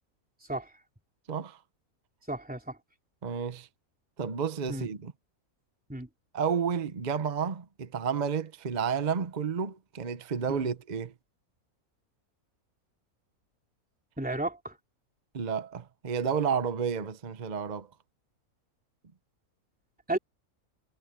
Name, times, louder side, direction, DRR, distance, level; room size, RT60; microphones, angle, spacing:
voice 1, 1.3-1.6 3.2-3.7 4.2-5.1 6.3-11.1 15.3-17.9, right 6 dB, 35° right, 0.9 m, -31 dB
voice 2, 2.3-2.8 4.7-4.9 5.9-6.1 10.5-10.7 14.2-14.8 20.1-20.2, right 2 dB, 5° right, 3.3 m, -33 dB
omnidirectional pair, 1.6 m